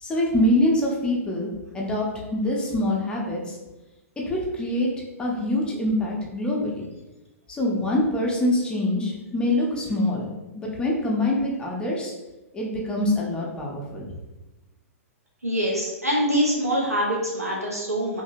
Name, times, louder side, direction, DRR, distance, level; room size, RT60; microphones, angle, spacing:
voice 1, 0.0-3.6 4.3-4.9 5.2-6.9 7.5-10.3 10.5-12.1 12.5-14.1, left 1 dB, 10° left, -3 dB, 0.4 m, -25 dB
voice 2, 15.4-18.2, equal, 90° right, -4 dB, 0.5 m, -24 dB
2.7 x 2.5 x 2.6 m, 1.1 s
figure-of-eight pair, 105°, 8 cm